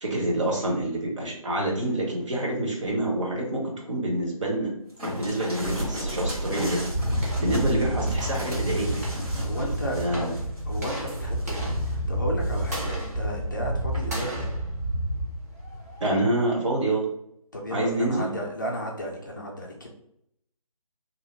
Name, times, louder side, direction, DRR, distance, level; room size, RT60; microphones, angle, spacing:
voice 1, 0.0-4.7 5.2-9.0 9.9-10.3 16.0-17.1 17.7-18.3, right 1 dB, 55° right, -2 dB, 1.0 m, -27 dB
sound 1, 5.0-12.0 12.4-13.1 13.9-14.3, right 1 dB, 80° right, 1.2 m, -33 dB
sound 2, 6.9-16.1, right 1 dB, 25° right, 0.6 m, -29 dB
voice 2, 9.4-10.3 10.7-14.4 17.5-19.9, equal, 35° left, -2 dB, 0.4 m, -34 dB
2.7 x 2.0 x 2.9 m, 0.74 s
figure-of-eight pair, 155°, 19 cm